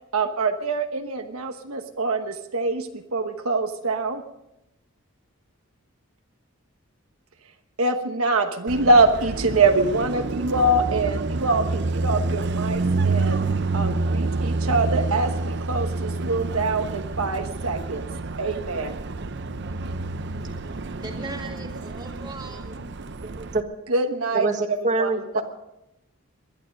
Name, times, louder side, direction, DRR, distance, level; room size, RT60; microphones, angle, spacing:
voice 1, 0.1-4.2 7.8-13.4 13.7-18.0 18.4-19.0 23.9-24.5 25.0-25.4, right 2 dB, 75° right, 6 dB, 1.1 m, -24 dB
Car passing by, 8.7-23.6, right 3 dB, 50° right, 0.6 m, -28 dB
voice 2, 19.7-22.7, right 2 dB, 20° right, 3 dB, 2.0 m, -41 dB
voice 3, 23.2-23.6 24.3-25.4, right 3 dB, 35° right, 5 dB, 1.6 m, -25 dB
20.5 x 11.5 x 5.3 m, 0.86 s
head